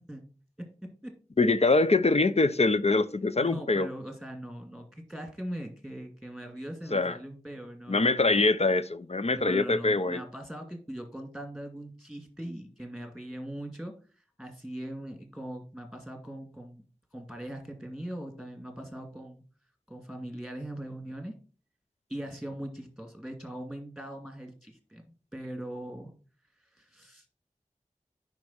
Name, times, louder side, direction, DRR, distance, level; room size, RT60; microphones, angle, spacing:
voice 1, 0.6-1.2 3.4-8.5 9.4-13.9 14.4-16.8 17.1-19.4 19.9-21.3 22.1-25.0 25.3-26.1 26.7-27.3, right 1 dB, ahead, 2.3 m, -40 dB
voice 2, 1.4-3.9 6.9-7.2 7.9-10.2, left 3 dB, 55° left, 0.6 m, -24 dB
9.4 x 5.4 x 4.3 m
wide cardioid pair, 45°, 13 cm